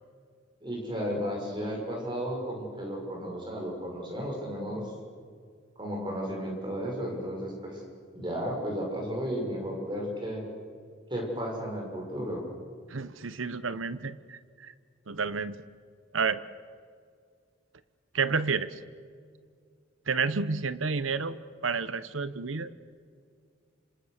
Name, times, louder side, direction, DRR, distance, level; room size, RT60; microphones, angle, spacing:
voice 1, 0.6-4.9 5.8-7.8 8.1-10.4 11.1-12.5, equal, 25° right, 0 dB, 6.4 m, -33 dB
voice 2, 12.9-14.7 15.1-15.6 16.1-16.4 18.1-18.8 20.1-22.7, right 5 dB, 85° right, 15 dB, 1.0 m, -30 dB
27.5 x 25.5 x 6.7 m, 2.1 s
head